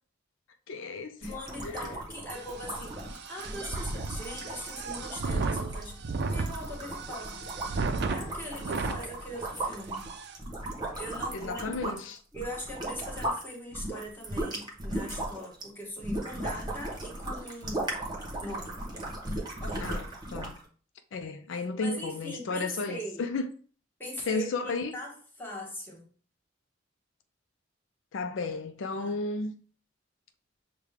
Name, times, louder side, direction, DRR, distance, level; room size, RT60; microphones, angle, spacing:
voice 1, 0.7-1.3 1.6-1.9 11.3-12.2 19.8-20.0 20.3-20.6 21.1-23.5 24.3-25.0 28.1-29.5, left 3 dB, 80° left, 0.4 m, -33 dB
voice 2, 1.2-6.0 6.3-7.4 8.1-10.1 10.9-11.7 12.3-17.9 18.4-18.8 19.6-20.0 21.5-23.3 24.0-26.1 28.9-29.2, equal, 10° left, 1.3 m, -41 dB
sound 1, 1.2-13.4 13.7-20.6, right 1 dB, 20° right, 1.0 m, -37 dB
sound 2, 2.3-9.0 9.6-9.7 9.9-10.4, right 3 dB, 60° right, 0.4 m, -34 dB
6.4 x 2.2 x 3.5 m
head